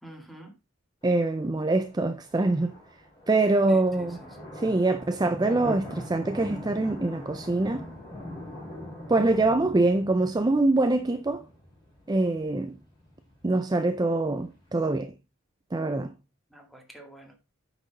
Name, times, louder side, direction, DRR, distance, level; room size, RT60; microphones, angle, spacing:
voice 1, 0.0-0.5 3.7-4.3 16.5-17.3, right 1 dB, ahead, 2.0 m, -47 dB
sound 1, 1.0-14.9, left 1 dB, 25° left, 4.4 m, -43 dB
voice 2, 1.0-2.7 3.3-4.2 4.5-7.9 9.1-11.4 12.1-12.7 13.4-15.1 15.7-16.1, right 2 dB, 20° right, 0.4 m, -24 dB
9.0 x 6.0 x 4.0 m
head